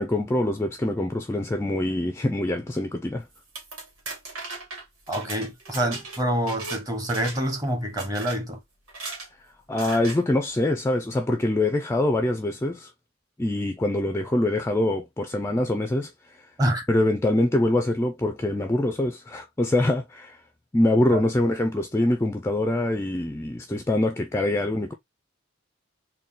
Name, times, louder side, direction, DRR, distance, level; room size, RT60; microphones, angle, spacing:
voice 1, 0.0-3.2 9.7-12.9 13.4-16.5 16.9-20.4 20.7-24.9, left 1 dB, 10° left, 0.3 m, -24 dB
sound 1, 3.3-6.8 7.1-7.6 8.0-8.4 8.9-9.3 9.8-10.2, right 3 dB, 75° right, 1.8 m, -37 dB
voice 2, 5.1-8.6 16.6-16.9 21.1-21.2, equal, 20° right, 1.0 m, -27 dB
4.0 x 2.2 x 3.6 m
head